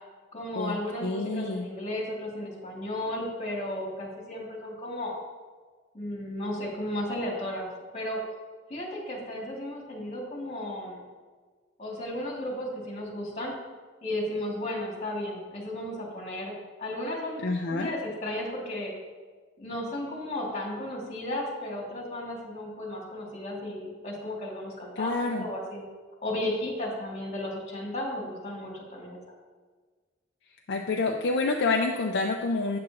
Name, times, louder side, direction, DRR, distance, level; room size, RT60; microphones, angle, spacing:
voice 1, 0.3-5.1 5.9-7.7 7.9-8.2 8.7-11.0 11.8-13.5 14.0-16.5 16.8-17.4 17.7-18.9 19.6-25.8 26.2-29.2, left 1 dB, 35° left, -3 dB, 2.3 m, -34 dB
voice 2, 1.0-1.7 17.4-17.9 25.0-25.4 30.7-32.8, left 3 dB, 60° left, 2 dB, 0.5 m, -28 dB
8.5 x 7.6 x 2.9 m, 1.4 s
head